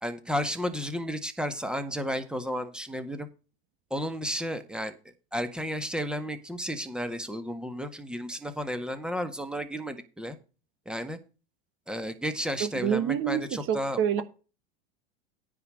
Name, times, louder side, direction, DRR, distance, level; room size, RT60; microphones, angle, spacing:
voice 1, 0.0-3.3 3.9-5.0 5.3-10.4 10.9-11.2 11.9-14.2, equal, 5° right, 1.7 m, -33 dB
voice 2, 12.6-14.2, right 9 dB, 40° right, 1.4 m, -27 dB
9.7 x 4.8 x 7.8 m
hypercardioid pair, 100°, 31 cm